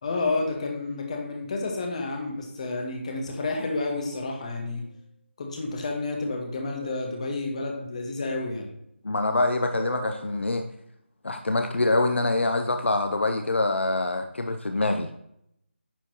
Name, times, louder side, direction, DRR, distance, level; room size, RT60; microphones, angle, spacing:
voice 1, 0.0-4.8 5.4-8.7, left 3 dB, 30° left, 1 dB, 1.4 m, -30 dB
sound 1, 6.8-7.9 9.7-10.5, equal, 35° right, 1.6 m, -41 dB
voice 2, 9.0-10.6 11.2-15.1, left 2 dB, 65° left, 6 dB, 0.6 m, -25 dB
10.0 x 4.4 x 3.0 m, 0.76 s
figure-of-eight pair, 160°, 7 cm